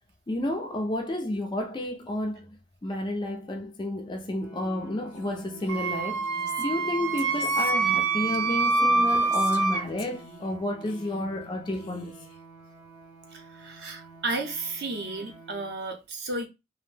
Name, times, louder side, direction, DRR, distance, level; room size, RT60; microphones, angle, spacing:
voice 1, 0.3-6.2 6.6-12.1, left 1 dB, 20° left, 0.3 m, -31 dB
sound 1, 4.4-15.7, right 4 dB, 10° right, 0.7 m, -49 dB
Female speech woman speaking, 5.1-9.7 10.0-10.5 10.8-11.5 11.7-12.4, left 4 dB, 85° left, 0.6 m, -46 dB
Wind instrument woodwind instrument, 5.7-9.8, right 3 dB, 90° right, 0.5 m, -25 dB
voice 2, 13.3-16.5, right 2 dB, 50° right, 0.6 m, -33 dB
2.5 x 2.0 x 3.2 m
head